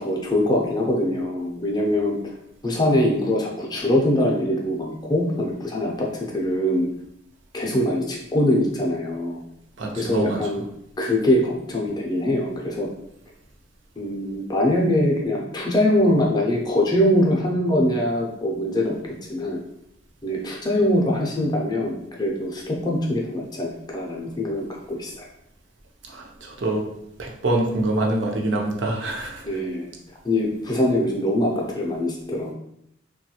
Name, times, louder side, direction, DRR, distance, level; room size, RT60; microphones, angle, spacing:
voice 1, 0.0-2.2 2.6-6.9 7.5-9.4 9.9-10.6 11.0-12.9 14.0-18.9 19.3-19.6 20.2-25.3 29.4-29.9 30.2-32.5, left 1 dB, 20° left, -1 dB, 0.5 m, -23 dB
voice 2, 9.8-10.5 26.1-26.8 27.2-29.6, right 2 dB, 70° right, 0 dB, 0.6 m, -25 dB
3.0 x 2.3 x 2.8 m, 0.76 s
head